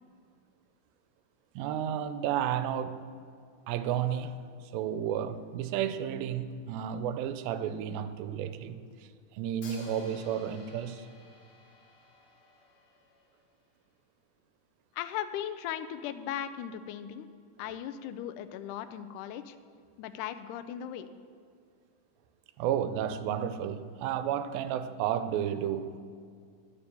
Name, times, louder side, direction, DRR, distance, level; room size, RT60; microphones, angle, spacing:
voice 1, 1.6-3.0 3.7-4.4 4.7-11.1 22.6-26.0, right 9 dB, 85° right, 2.4 m, -32 dB
Hi-hat, 9.6-13.6, left 3 dB, 55° left, 2.5 m, -54 dB
voice 2, 15.0-17.3 17.6-19.6 20.0-21.1, left 10 dB, 90° left, 1.8 m, -37 dB
10.0 x 6.9 x 6.8 m
omnidirectional pair, 4.1 m